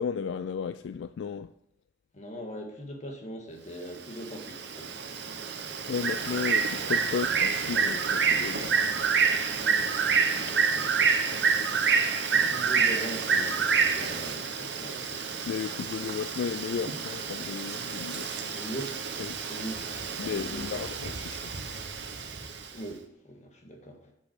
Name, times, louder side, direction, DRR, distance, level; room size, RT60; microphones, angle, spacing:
voice 1, 0.0-1.5 5.9-8.7 15.5-18.7 19.2-19.3 20.2-21.4, left 6 dB, 70° left, 0.3 m, -34 dB
voice 2, 2.1-5.0 9.6-11.4 12.3-15.2 18.5-18.9 19.5-20.9 22.7-24.0, right 1 dB, 40° left, 1.7 m, -41 dB
Bird, 4.0-22.7, right 6 dB, 65° right, 1.0 m, -28 dB
7.7 x 5.3 x 6.6 m
head